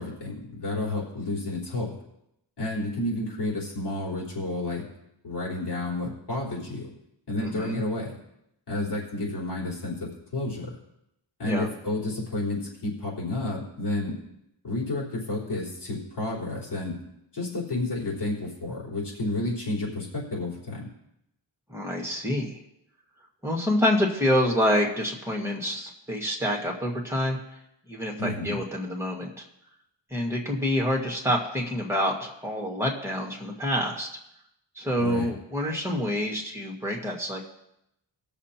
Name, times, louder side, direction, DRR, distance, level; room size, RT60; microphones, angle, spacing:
voice 1, 0.0-2.0 2.6-4.8 5.2-6.9 7.3-8.1 8.7-10.7 11.4-14.2 14.6-16.9 17.3-20.9 28.2-28.6 35.0-35.3, left 2 dB, 65° left, -5 dB, 4.2 m, -31 dB
voice 2, 7.4-7.8 11.4-11.7 21.7-22.6 23.4-27.4 27.9-29.4 30.1-34.1 34.8-37.4, left 1 dB, 5° right, -1 dB, 1.8 m, -27 dB
20.5 x 6.9 x 2.9 m, 0.81 s
wide cardioid pair, 165°, 44 cm